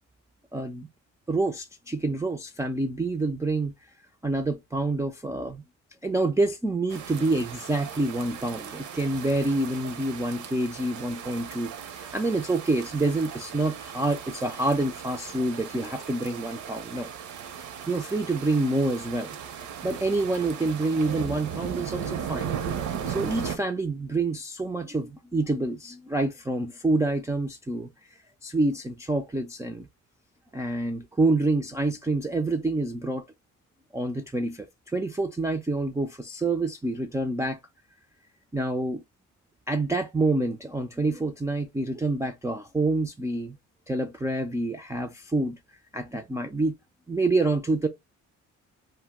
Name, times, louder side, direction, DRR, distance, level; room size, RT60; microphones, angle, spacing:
voice 1, 0.5-0.9 1.3-3.7 4.2-5.6 6.0-17.1 17.9-19.4 19.8-22.6 23.1-29.9 30.5-33.2 33.9-37.6 38.5-39.0 39.7-43.6 43.9-45.6 45.9-46.8 47.1-47.9, right 2 dB, 10° right, 0.3 m, -27 dB
sound 1, 6.9-23.6, right 8 dB, 70° right, 0.6 m, -37 dB
2.4 x 2.0 x 3.4 m
cardioid pair, 90°, 30 cm